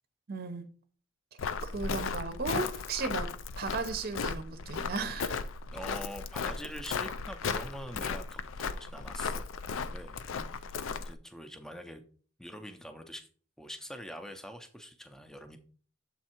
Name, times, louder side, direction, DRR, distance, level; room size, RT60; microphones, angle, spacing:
voice 1, 0.3-0.7 1.6-5.4, right 4 dB, 50° right, 0.7 m, -35 dB
Walk footsteps, 1.4-11.1, left 5 dB, 80° left, 0.4 m, -36 dB
voice 2, 5.7-9.5 9.8-10.2 10.5-12.0 12.4-13.3 13.6-15.6, equal, 5° left, 0.5 m, -44 dB
7.4 x 3.6 x 4.3 m
head